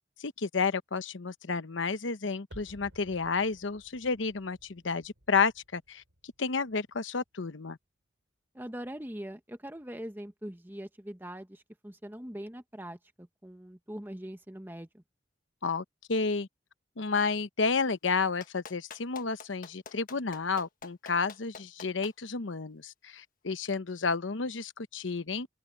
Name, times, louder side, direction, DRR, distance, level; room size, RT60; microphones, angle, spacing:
voice 1, 0.2-6.0 6.4-7.8 15.6-16.5 17.0-25.5, left 4 dB, 90° left, 0.9 m, -31 dB
sound 1, 2.5-7.4 7.7-7.8, equal, 90° right, 7.8 m, -56 dB
voice 2, 8.5-15.0, equal, 10° right, 1.1 m, -42 dB
Clapping, 18.4-22.1 23.7-23.8, left 5 dB, 45° left, 1.5 m, -46 dB
open air
head